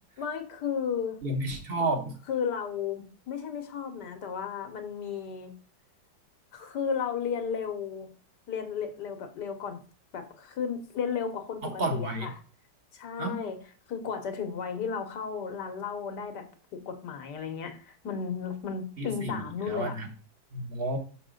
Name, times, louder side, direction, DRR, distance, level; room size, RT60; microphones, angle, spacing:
voice 1, 0.2-1.2 2.3-5.5 6.5-8.1 8.5-9.8 10.1-12.4 12.9-16.5 16.7-20.0, left 6 dB, 70° left, 7 dB, 1.8 m, -34 dB
voice 2, 1.2-2.1 11.6-12.3 13.2-13.4 19.0-19.3 19.7-20.1 20.5-21.0, right 2 dB, 35° right, 5 dB, 1.2 m, -31 dB
6.1 x 6.0 x 3.8 m, 0.38 s
omnidirectional pair, 1.9 m